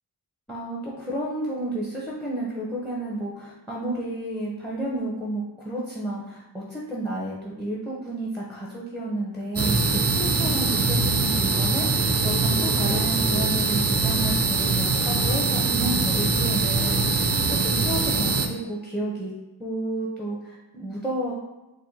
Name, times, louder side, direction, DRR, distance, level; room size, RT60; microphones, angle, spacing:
voice 1, 0.5-17.2 17.5-19.3 19.6-21.3, right 1 dB, ahead, -5 dB, 0.7 m, -31 dB
sound 1, 9.6-18.5, right 3 dB, 35° right, 0.4 m, -23 dB
4.8 x 2.1 x 2.7 m, 1.0 s
wide cardioid pair, 65°, 46 cm